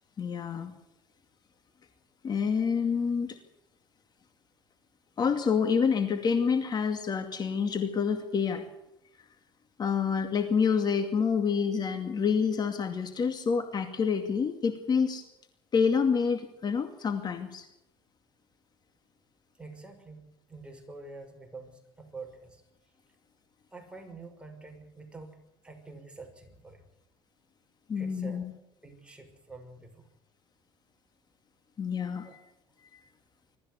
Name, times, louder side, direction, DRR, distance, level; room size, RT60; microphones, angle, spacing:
voice 1, 0.2-0.7 2.2-3.4 5.2-8.7 9.8-15.2 15.7-17.7 27.9-28.5 31.8-32.3, left 6 dB, 40° left, 7 dB, 2.3 m, -27 dB
voice 2, 19.6-20.2 20.5-22.6 23.7-26.8 28.0-28.5 28.8-30.1 32.2-32.3, right 3 dB, 10° right, 3 dB, 6.0 m, -47 dB
23.5 x 14.0 x 8.2 m, 0.88 s
supercardioid pair, 95°, 11 cm